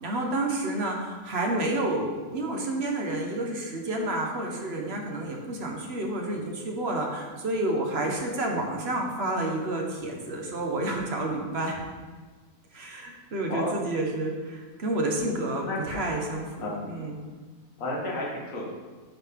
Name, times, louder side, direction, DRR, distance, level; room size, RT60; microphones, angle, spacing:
voice 1, 0.0-11.8 12.7-17.2, right 1 dB, 45° right, 1 dB, 1.2 m, -30 dB
voice 2, 13.5-13.8 15.6-16.1 16.6-16.8 17.8-18.7, left 1 dB, 60° left, -4 dB, 1.7 m, -32 dB
11.0 x 4.1 x 3.6 m, 1.4 s
omnidirectional pair, 1.6 m